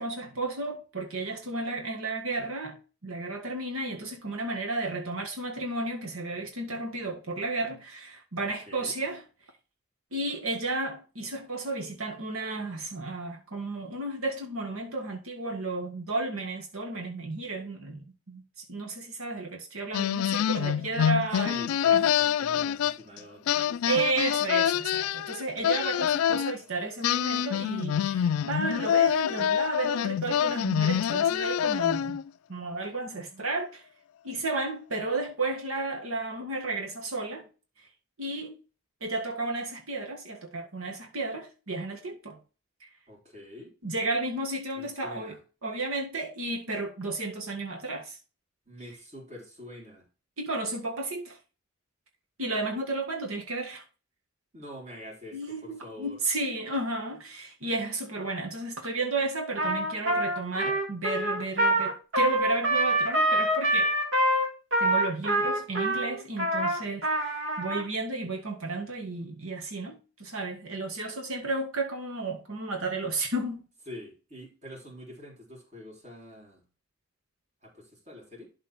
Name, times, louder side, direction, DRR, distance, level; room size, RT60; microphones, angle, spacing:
voice 1, 0.0-9.2 10.1-21.6 21.9-22.2 23.9-32.2 32.5-33.9 34.2-37.5 38.2-38.6 39.0-42.4 42.8-42.9 43.8-48.2 50.4-51.4 52.4-53.8 55.3-63.9 64.8-73.6, right 2 dB, 85° right, 1.9 m, -33 dB
sound 1, 19.9-23.2 23.5-26.5 27.0-32.3, left 9 dB, 85° left, 0.3 m, -26 dB
voice 2, 20.5-24.3 43.1-43.7 44.7-45.4 48.7-50.0 54.5-56.2 73.9-76.6 77.6-78.5, left 1 dB, 35° right, 3.5 m, -46 dB
Trumpet, 59.6-67.8, right 1 dB, 65° right, 2.1 m, -26 dB
12.0 x 4.0 x 4.4 m
head